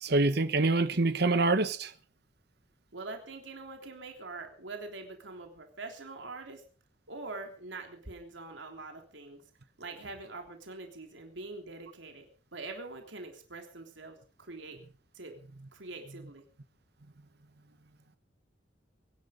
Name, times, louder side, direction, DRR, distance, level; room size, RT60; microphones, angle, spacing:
voice 1, 0.0-1.9, right 2 dB, 60° right, 1.1 m, -26 dB
voice 2, 2.9-6.6 7.1-9.4 9.8-12.3 12.5-14.8 15.1-15.3 15.7-16.4, right 3 dB, 85° right, 3.5 m, -44 dB
23.0 x 11.5 x 5.1 m
head